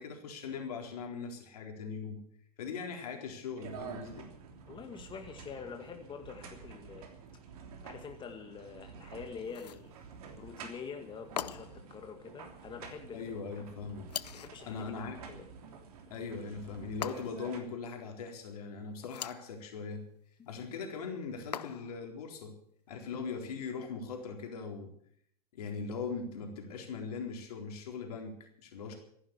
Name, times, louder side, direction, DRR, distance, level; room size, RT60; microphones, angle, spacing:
voice 1, 0.0-2.2 2.6-4.3 13.1-14.1 14.6-15.2 16.1-20.0 20.4-22.6 22.9-24.9 25.5-28.9, left 5 dB, 70° left, 3 dB, 4.0 m, -40 dB
sound 1, 3.6-17.6, right 6 dB, 65° right, 3.2 m, -50 dB
voice 2, 4.7-7.1 7.8-9.9 10.4-13.6 14.3-15.0 15.3-15.5 16.1-16.2 28.9-29.0, left 6 dB, 25° left, 5 dB, 1.9 m, -46 dB
sound 2, 9.5-9.9 11.4-11.9 14.1-14.6 17.0-17.5 19.0-19.5 21.5-22.1, left 9 dB, 85° left, 0.6 m, -41 dB
14.5 x 11.0 x 8.3 m, 0.66 s
hypercardioid pair, 95°, 20 cm